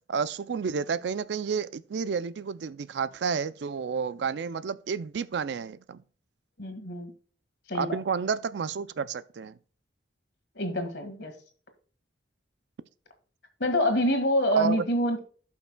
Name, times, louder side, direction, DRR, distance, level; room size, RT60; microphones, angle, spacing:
voice 1, 0.1-6.0 7.7-9.5 14.6-14.8, right 6 dB, 70° right, 0.4 m, -30 dB
voice 2, 6.6-7.1 7.7-8.0 10.5-11.3 13.6-15.2, equal, 70° left, 1.7 m, -26 dB
16.0 x 5.7 x 2.2 m
head